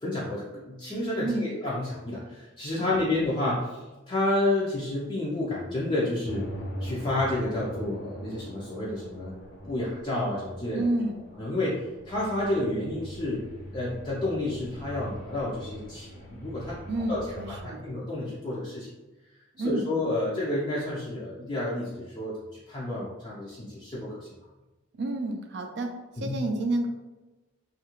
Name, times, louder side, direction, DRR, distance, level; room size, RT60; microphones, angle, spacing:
voice 1, 0.0-3.8 4.1-6.5 6.8-9.3 9.7-10.9 11.4-13.4 13.7-16.8 17.1-17.2 17.6-18.9 19.6-22.4 22.7-24.2 26.2-26.4, left 1 dB, 25° left, -7 dB, 0.4 m, -30 dB
voice 2, 2.8-3.1 10.7-11.2 16.9-17.9 19.5-19.9 24.9-26.9, right 2 dB, 55° right, 4 dB, 0.4 m, -30 dB
sound 1, 6.2-17.6, right 1 dB, 90° left, 0.8 m, -42 dB
2.7 x 2.4 x 2.9 m, 1.1 s
head